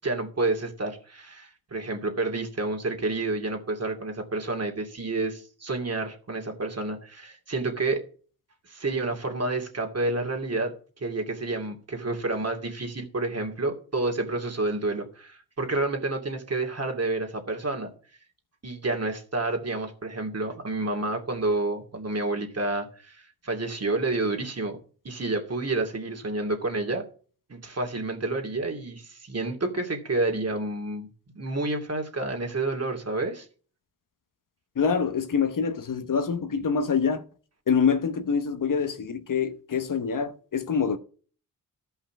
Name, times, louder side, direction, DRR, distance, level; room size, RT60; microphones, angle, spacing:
voice 1, 0.0-8.0 8.7-17.9 18.6-24.8 25.0-27.0 27.5-31.1 31.3-33.5, right 2 dB, 40° right, 2.6 m, -29 dB
voice 2, 34.8-37.2 37.7-41.0, left 6 dB, 60° left, 1.1 m, -25 dB
13.0 x 5.7 x 6.0 m
cardioid pair, 65°, 36 cm